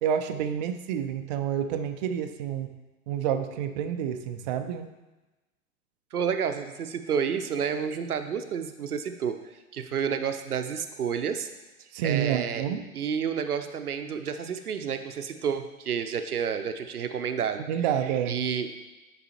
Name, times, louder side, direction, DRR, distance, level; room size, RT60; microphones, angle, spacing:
voice 1, 0.0-2.8 3.1-4.9 11.9-12.8 17.7-18.4, right 9 dB, 35° right, 6 dB, 0.4 m, -29 dB
voice 2, 6.1-9.4 9.7-11.5 12.0-12.6 12.9-17.6 18.3-18.7, right 7 dB, 80° right, 8 dB, 0.6 m, -30 dB
9.9 x 4.0 x 2.9 m, 1.1 s
figure-of-eight pair, 95°, 44 cm